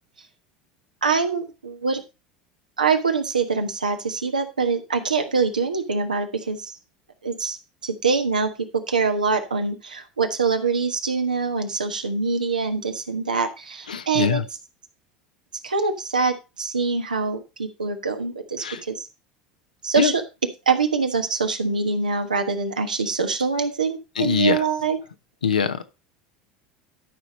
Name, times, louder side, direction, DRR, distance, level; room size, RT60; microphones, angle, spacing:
voice 1, 1.0-2.0 2.8-6.8 7.2-7.6 7.8-8.5 8.9-14.4 15.6-19.1 19.8-20.2 20.7-25.0, right 4 dB, 90° right, 6 dB, 1.3 m, -24 dB
voice 2, 13.9-14.4 18.6-18.8 20.0-20.1 24.2-24.6 25.4-25.9, left 6 dB, 85° left, 10 dB, 0.9 m, -22 dB
12.5 x 5.2 x 4.2 m, 0.28 s
hypercardioid pair, 75°, 4 cm